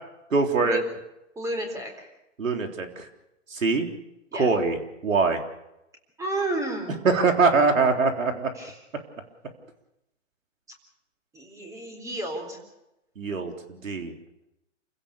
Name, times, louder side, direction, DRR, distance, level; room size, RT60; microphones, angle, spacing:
voice 1, 0.3-0.8 2.4-3.1 3.5-3.9 4.4-5.4 7.0-8.5 13.2-14.1, right 4 dB, 90° right, 4 dB, 3.7 m, -23 dB
voice 2, 1.4-2.1 4.3-4.5 6.2-7.1 8.5-8.8 11.3-12.6, right 1 dB, 10° right, 4 dB, 4.0 m, -32 dB
28.5 x 16.5 x 6.8 m, 0.90 s
hypercardioid pair, 150°, 38 cm